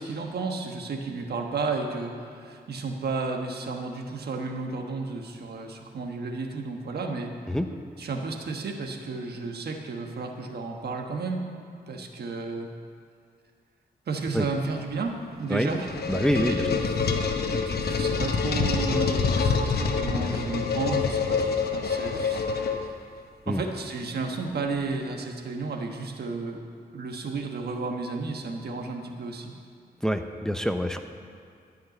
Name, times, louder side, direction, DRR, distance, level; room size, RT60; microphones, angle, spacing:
voice 1, 0.0-7.3 8.0-11.4 11.9-12.7 14.1-16.0 16.3-22.9 23.5-26.6 26.9-29.5, right 3 dB, 80° right, 3 dB, 1.3 m, -33 dB
sound 1, 15.4-23.2, left 5 dB, 75° left, 1.0 m, -26 dB
voice 2, 16.1-16.6 23.5-23.6 30.0-31.0, equal, 5° left, 6 dB, 0.7 m, -25 dB
13.5 x 5.8 x 9.1 m, 2.3 s
cardioid pair, 85°, 16 cm